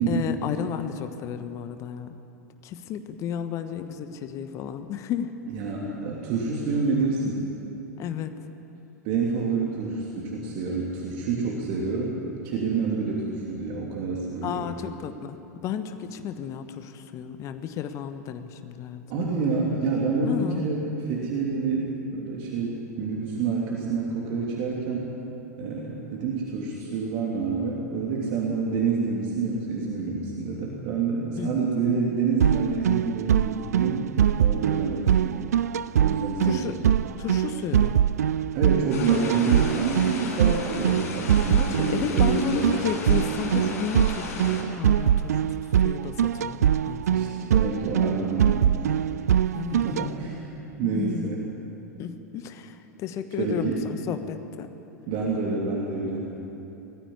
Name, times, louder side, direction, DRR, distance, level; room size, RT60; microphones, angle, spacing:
voice 1, 0.1-2.1 2.6-5.3 5.9-6.0 8.0-8.3 14.4-15.4 15.6-19.3 20.2-20.8 31.4-31.6 36.4-36.8 37.2-38.0 41.5-45.5 45.8-47.5 49.5-50.2 50.8-51.3 52.0-54.7, left 8 dB, 35° left, 9 dB, 1.2 m, -33 dB
voice 2, 5.5-7.4 9.0-12.2 12.4-14.7 19.1-25.0 25.6-34.0 34.4-35.4 36.0-36.9 38.5-42.8 43.4-43.8 47.1-49.0 49.7-50.5 50.8-51.4 53.4-53.8 55.1-56.3, right 4 dB, 45° right, -3 dB, 3.0 m, -28 dB
sound 1, 32.4-50.1, right 9 dB, 65° right, 0.4 m, -23 dB
sound 2, 38.9-44.6, left 3 dB, 60° left, 5.4 m, -36 dB
20.5 x 14.5 x 9.7 m, 2.9 s
figure-of-eight pair, 90°, 9 cm